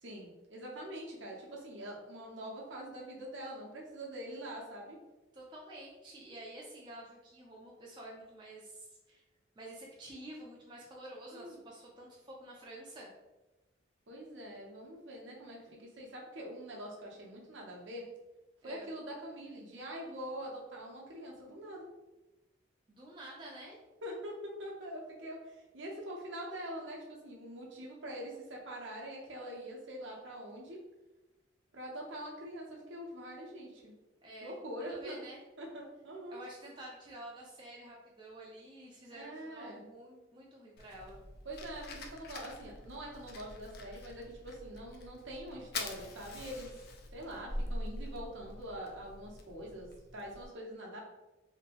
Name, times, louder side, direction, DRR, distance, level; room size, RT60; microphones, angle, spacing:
voice 1, 0.0-5.0 11.3-11.6 14.1-18.0 18.6-21.9 24.0-30.8 31.7-33.9 34.4-35.2 35.6-36.4 39.1-39.8 41.4-46.8 47.1-51.0, equal, 70° right, -2 dB, 0.7 m, -44 dB
voice 2, 5.3-9.2 9.6-13.1 18.6-18.9 22.9-23.8 34.2-35.4 36.3-41.2, right 1 dB, 25° right, -3 dB, 0.4 m, -49 dB
Fire, 40.8-50.5, left 2 dB, 50° left, 0.4 m, -44 dB
2.9 x 2.6 x 2.9 m, 1.1 s
head